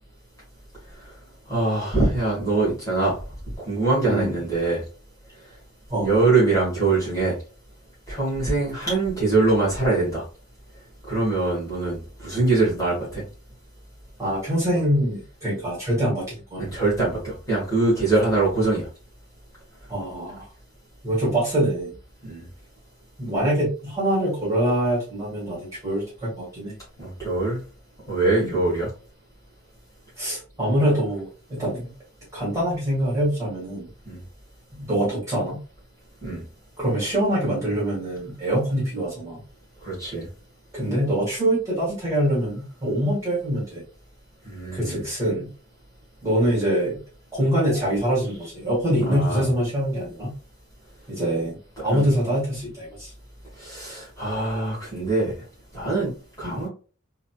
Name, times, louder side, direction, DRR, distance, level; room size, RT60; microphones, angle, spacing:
voice 1, 1.5-3.2 3.7-4.8 6.0-7.4 8.1-10.2 11.1-13.2 16.6-18.9 22.2-22.4 27.0-27.6 28.1-28.9 34.1-34.2 36.2-36.4 39.8-40.3 44.5-45.0 49.1-49.5 51.9-52.1 53.6-55.3 55.7-56.7, right 3 dB, 15° left, -8 dB, 1.8 m, -23 dB
voice 2, 14.2-16.2 16.5-16.7 19.9-20.4 21.0-21.9 23.2-26.8 28.4-28.6 30.2-31.9 32.3-33.9 34.7-35.6 36.8-39.4 40.7-43.8 44.7-45.5 46.2-47.0 47.3-50.3 51.1-53.1 56.4-56.6, right 1 dB, 15° right, -8 dB, 1.8 m, -24 dB
3.9 x 2.7 x 2.4 m, 0.37 s
head